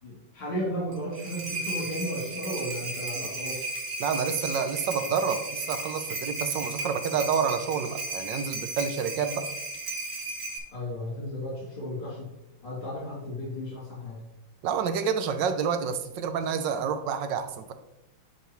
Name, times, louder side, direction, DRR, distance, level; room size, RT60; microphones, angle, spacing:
voice 1, 0.0-3.7 10.7-12.3 12.6-14.2, equal, 70° left, -6 dB, 3.6 m, -34 dB
sound 1, 0.9-10.6, right 2 dB, 50° right, 1.6 m, -35 dB
voice 2, 4.0-9.5 14.6-17.7, right 6 dB, 70° right, 9 dB, 1.2 m, -28 dB
10.5 x 4.9 x 3.0 m, 0.90 s
omnidirectional pair, 2.3 m